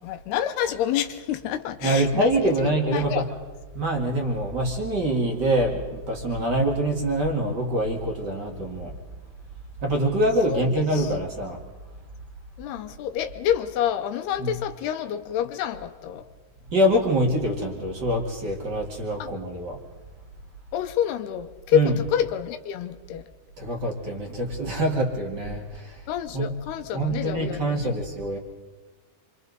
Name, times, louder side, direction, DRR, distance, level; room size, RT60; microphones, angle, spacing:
voice 1, 0.0-2.3 2.9-3.2 10.5-11.0 12.6-16.2 19.2-19.3 20.7-23.2 26.1-27.6, left 10 dB, 80° left, 8 dB, 2.9 m, -27 dB
voice 2, 1.8-3.3 3.7-8.9 9.8-11.6 14.4-14.6 16.7-19.8 21.7-22.1 23.6-26.0 26.3-26.6 26.9-28.4, right 1 dB, 35° right, 0 dB, 2.0 m, -25 dB
27.5 x 25.0 x 4.1 m, 1.3 s
omnidirectional pair, 4.7 m